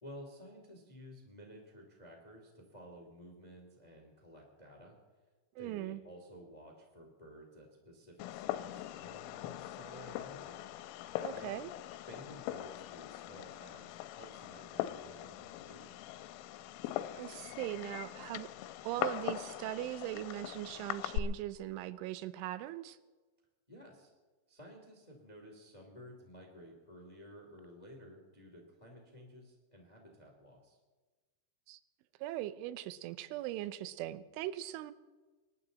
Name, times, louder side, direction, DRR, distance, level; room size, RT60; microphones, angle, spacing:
voice 1, 0.0-5.0 5.6-10.6 11.3-11.5 12.1-16.0 23.7-24.1 24.5-30.8, equal, 15° left, 1 dB, 1.3 m, -53 dB
voice 2, 5.6-6.0 11.2-11.7 17.2-18.5 18.8-23.0 31.7-31.8 32.2-34.9, right 14 dB, 80° right, 14 dB, 3.1 m, -40 dB
Fireworks, 8.2-21.2, left 14 dB, 90° left, 3.2 m, -41 dB
27.0 x 12.0 x 4.0 m, 1.3 s
omnidirectional pair, 5.6 m